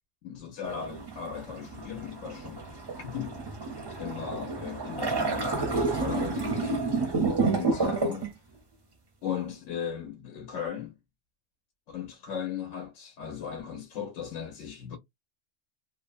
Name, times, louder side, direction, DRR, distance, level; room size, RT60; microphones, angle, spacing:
voice 1, 0.2-2.7 3.0-3.5 4.0-6.8 7.5-8.3 9.2-11.0 11.9-15.0, left 8 dB, 85° left, 1.0 m, -37 dB
sound 1, 0.6-8.3, right 3 dB, 35° right, 0.4 m, -30 dB
2.7 x 2.0 x 2.4 m
omnidirectional pair, 1.3 m